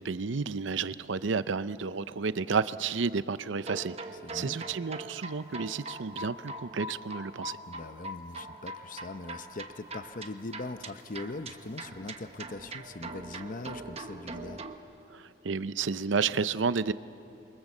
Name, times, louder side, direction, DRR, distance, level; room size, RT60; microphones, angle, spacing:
voice 1, 0.0-4.0 4.3-7.6 15.1-16.9, right 5 dB, 75° right, 14 dB, 0.6 m, -31 dB
sound 1, 3.6-14.8, right 2 dB, 35° right, 1.2 m, -42 dB
voice 2, 4.2-4.7 7.7-14.6, left 2 dB, 45° left, 11 dB, 0.7 m, -41 dB
28.0 x 23.5 x 7.3 m, 2.8 s
head